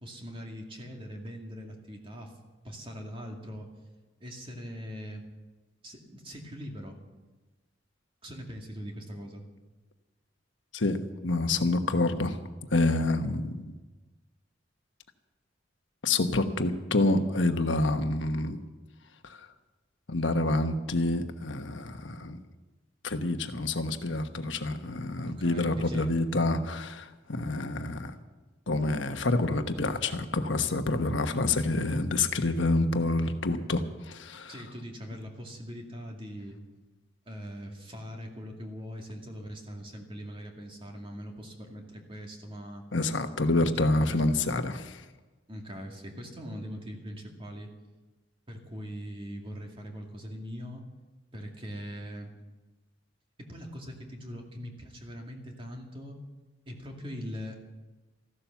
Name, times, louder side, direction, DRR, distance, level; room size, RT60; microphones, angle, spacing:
voice 1, 0.0-2.3 2.6-3.7 4.2-5.3 5.8-7.0 8.2-9.4 25.2-26.1 34.5-36.6 37.3-42.8 43.6-44.2 45.5-47.7 48.5-50.8 51.3-52.3 53.5-56.2 56.7-57.6, equal, 30° right, 2 dB, 2.3 m, -41 dB
voice 2, 11.2-12.4 12.7-13.7 16.0-18.6 19.2-19.4 20.1-22.4 23.0-28.1 28.7-34.5 42.9-45.0, left 2 dB, 70° left, 7 dB, 1.2 m, -27 dB
14.5 x 11.5 x 7.1 m, 1.2 s
head